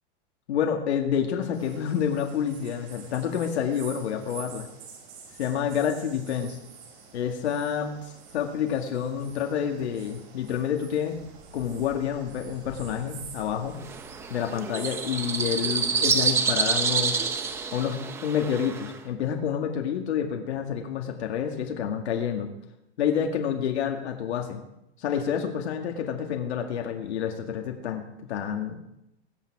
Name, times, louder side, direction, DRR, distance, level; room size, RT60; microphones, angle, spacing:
voice 1, 0.5-4.7 5.4-6.6 7.1-11.2 11.5-13.8 14.3-17.2 17.7-22.5 23.0-24.6 25.0-28.8, left 8 dB, 80° left, 2 dB, 2.1 m, -28 dB
sound 1, 1.5-17.7, right 4 dB, 35° right, 6.0 m, -47 dB
sound 2, 13.8-19.0, right 5 dB, 10° right, 0.6 m, -27 dB
21.5 x 8.8 x 4.8 m, 0.86 s
supercardioid pair, 165°, 33 cm